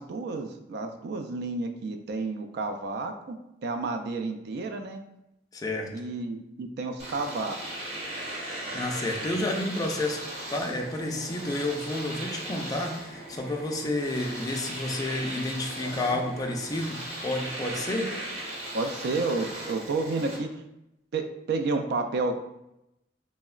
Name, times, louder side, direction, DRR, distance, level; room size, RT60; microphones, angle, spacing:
voice 1, 0.0-3.4 3.6-5.0 5.9-7.6 15.8-16.2 18.7-20.6 21.1-22.4, right 3 dB, 60° right, 6 dB, 0.3 m, -31 dB
voice 2, 5.5-5.9 8.7-10.2 10.5-18.1, left 1 dB, 20° left, 2 dB, 0.3 m, -30 dB
Domestic sounds home sounds, 7.0-20.4, right 1 dB, 40° right, 0.9 m, -38 dB
3.6 x 2.0 x 2.3 m, 0.87 s
head